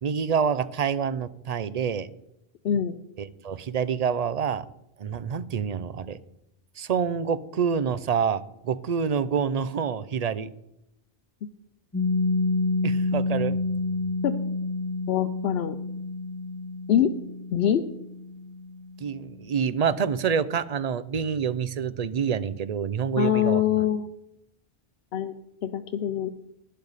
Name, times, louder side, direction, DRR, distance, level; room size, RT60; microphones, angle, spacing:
voice 1, 0.0-2.1 3.2-4.7 5.0-6.2 6.8-10.5 12.8-13.6 19.0-23.6, right 7 dB, 50° right, 15 dB, 0.6 m, -27 dB
voice 2, 2.6-3.0 14.2-14.3 15.1-15.8 16.9-17.1 17.5-17.8 23.2-24.1 25.1-25.3 25.6-26.3, left 9 dB, 80° left, 7 dB, 0.9 m, -24 dB
Piano, 11.9-19.2, left 3 dB, 15° left, 1.2 m, -29 dB
12.0 x 10.5 x 4.1 m, 0.83 s
omnidirectional pair, 1.0 m